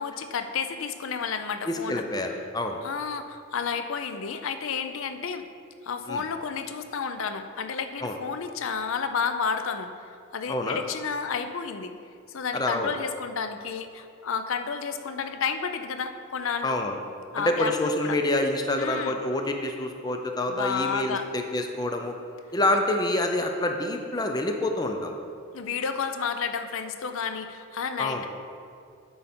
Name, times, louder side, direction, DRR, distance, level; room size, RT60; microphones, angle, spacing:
voice 1, 0.0-2.0 2.8-5.5 5.8-9.9 10.3-11.9 12.3-16.8 17.3-18.2 18.8-19.2 20.5-21.3 25.5-28.3, left 6 dB, 70° left, 8 dB, 0.5 m, -31 dB
voice 2, 1.7-2.8 6.1-6.2 8.0-8.2 10.5-10.8 12.5-12.9 16.6-17.0 17.5-22.2 22.5-25.1 28.0-28.3, left 1 dB, 20° left, 4 dB, 0.5 m, -27 dB
9.4 x 5.5 x 4.3 m, 2.3 s
head